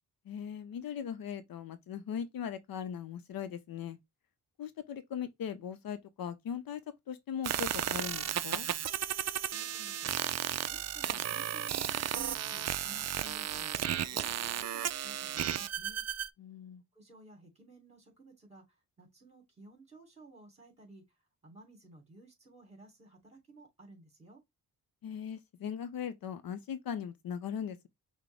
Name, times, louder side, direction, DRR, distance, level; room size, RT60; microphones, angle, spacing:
voice 1, 0.3-4.0 4.6-8.7 16.4-16.8 25.0-27.9, left 8 dB, 65° left, 0.6 m, -39 dB
sound 1, 7.4-16.3, right 10 dB, 45° right, 0.4 m, -34 dB
voice 2, 9.5-10.1 10.7-13.7 14.1-16.0 16.9-21.0 21.4-24.4, right 2 dB, 15° right, 3.0 m, -55 dB
6.0 x 2.2 x 3.4 m
cardioid pair, 95°, 39 cm